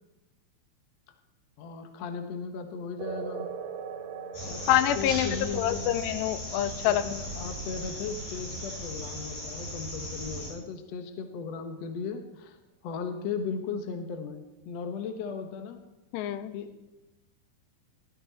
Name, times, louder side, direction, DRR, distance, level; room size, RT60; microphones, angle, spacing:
voice 1, 1.6-3.5 4.4-5.9 6.8-12.6 12.8-15.8 16.5-16.8, left 5 dB, 65° left, 6 dB, 1.6 m, -37 dB
sound 1, 3.0-10.0, right 6 dB, 65° right, 2.3 m, -42 dB
sound 2, 4.3-10.5, equal, 50° left, 7.2 m, -37 dB
voice 2, 4.7-7.1 16.1-16.5, left 12 dB, 85° left, 13 dB, 2.8 m, -26 dB
18.0 x 13.0 x 4.1 m, 0.98 s
omnidirectional pair, 4.9 m